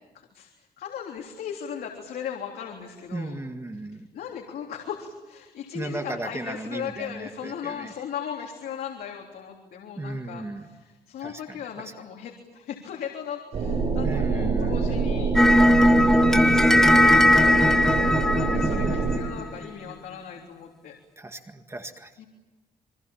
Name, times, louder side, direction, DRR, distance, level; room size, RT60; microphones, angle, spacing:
voice 1, 0.1-3.3 3.9-15.3 16.0-21.0 22.2-22.3, left 8 dB, 80° left, 1 dB, 3.5 m, -38 dB
voice 2, 3.1-4.1 5.7-7.9 10.0-10.7 11.2-11.6 11.8-11.9 14.0-14.8 18.3-19.1 21.2-22.1, right 2 dB, 15° right, 6 dB, 1.9 m, -36 dB
sound 1, 13.5-19.2, right 4 dB, 50° right, 6.8 m, -26 dB
sound 2, 15.4-19.7, left 1 dB, 5° left, 2.0 m, -19 dB
27.5 x 24.0 x 7.3 m, 1.2 s
cardioid pair, 125°, 16 cm